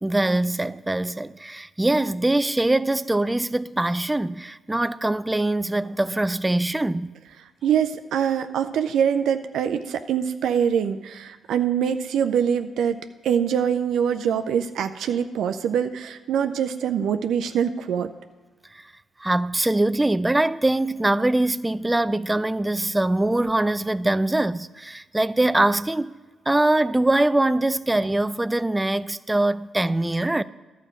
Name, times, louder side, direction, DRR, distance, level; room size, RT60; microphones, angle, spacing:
voice 1, 0.0-7.1 19.2-26.1 26.5-30.4, right 2 dB, 15° right, 0.4 m, -23 dB
voice 2, 7.6-13.0 13.2-18.1, right 8 dB, 75° right, 0.4 m, -24 dB
11.5 x 5.1 x 7.3 m
supercardioid pair, 55°, 0 cm